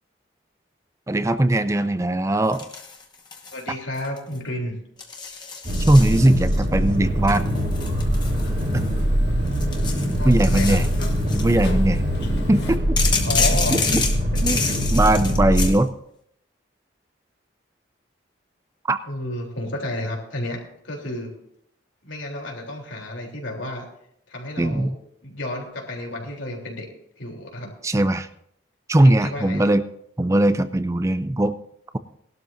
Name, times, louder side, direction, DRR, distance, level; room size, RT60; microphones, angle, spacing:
voice 1, 1.1-2.7 5.9-7.5 10.3-10.9 11.3-12.0 12.5-13.0 13.7-14.0 14.4-14.6 14.9-15.9 18.9-19.0 24.6-25.0 27.8-28.3 28.9-29.8 30.2-31.5, right 1 dB, 15° right, 12 dB, 0.4 m, -19 dB
sound 1, 2.5-3.6 3.9-4.4 5.0-6.6 7.3-9.0 9.5-11.6 13.0-15.8, left 5 dB, 25° left, 1.1 m, -29 dB
voice 2, 3.5-4.8 10.2-10.8 13.2-14.0 14.5-14.7 19.0-21.3 22.0-23.8 24.3-24.9 25.2-26.9 27.2-27.7 29.0-29.7, left 1 dB, 90° left, 0 dB, 3.4 m, -31 dB
sound 2, 5.6-15.7, equal, 45° right, 1.9 m, -23 dB
sound 3, 6.9-12.8, equal, 60° left, 1.5 m, -37 dB
20.0 x 12.0 x 2.6 m, 0.73 s
head